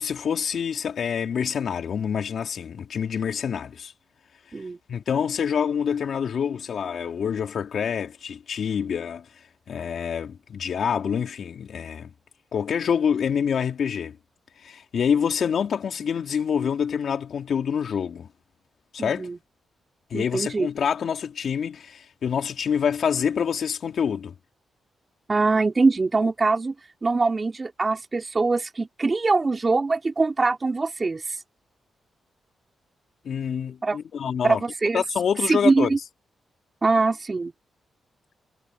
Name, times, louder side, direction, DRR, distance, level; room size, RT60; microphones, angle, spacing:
voice 1, 0.0-3.9 4.9-9.3 9.7-12.1 12.5-14.2 14.6-18.3 18.9-19.3 20.1-24.3 33.2-34.6 34.9-35.9, left 7 dB, 65° left, 3.5 m, -26 dB
voice 2, 19.0-19.4 20.1-20.7 25.3-26.7 27.0-31.4 33.8-34.0 34.4-35.0 35.5-36.0 36.8-37.5, right 3 dB, 30° right, 3.7 m, -23 dB
cardioid pair, 80°, 0 cm